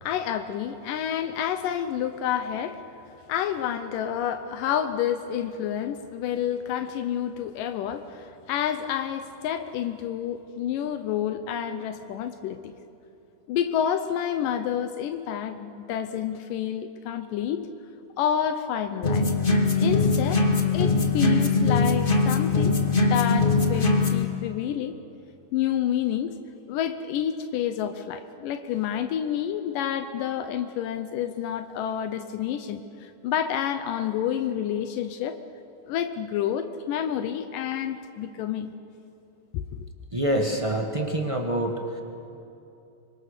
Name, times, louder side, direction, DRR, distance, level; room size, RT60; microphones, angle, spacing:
voice 1, 0.0-2.8 3.3-12.7 13.5-17.7 18.2-19.3 19.8-20.5 20.7-22.8 23.1-24.9 25.5-26.3 26.7-35.4 35.9-38.7 39.5-39.9, left 9 dB, 85° left, 9 dB, 2.4 m, -29 dB
sound 1, 19.0-24.3, left 3 dB, 60° left, 0.5 m, -21 dB
voice 2, 40.1-41.8, right 1 dB, 40° right, 2 dB, 0.4 m, -26 dB
25.0 x 25.0 x 6.7 m, 2.8 s
omnidirectional pair, 3.8 m